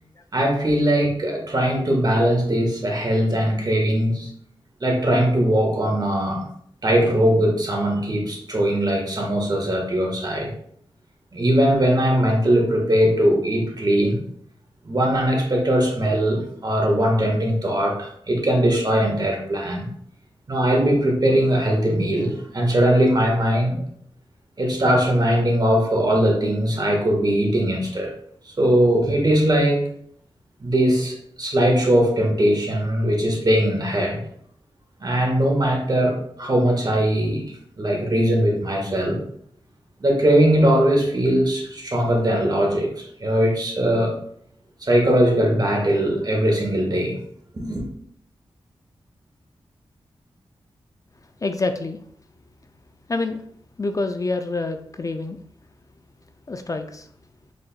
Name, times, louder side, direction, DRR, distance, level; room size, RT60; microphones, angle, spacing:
voice 1, 0.3-4.3 4.8-6.5 6.8-10.5 11.3-14.2 14.8-19.9 20.5-23.8 24.6-28.1 28.6-29.8 30.6-34.2 35.0-37.4 37.8-39.2 40.0-44.1 44.8-47.2 47.5-47.8, right 1 dB, 40° right, 0 dB, 1.6 m, -20 dB
voice 2, 51.4-52.0 53.1-53.4 53.8-55.4 56.5-57.1, left 3 dB, 35° left, 7 dB, 0.4 m, -26 dB
5.0 x 4.2 x 2.3 m, 0.66 s
cardioid pair, 50°, 10 cm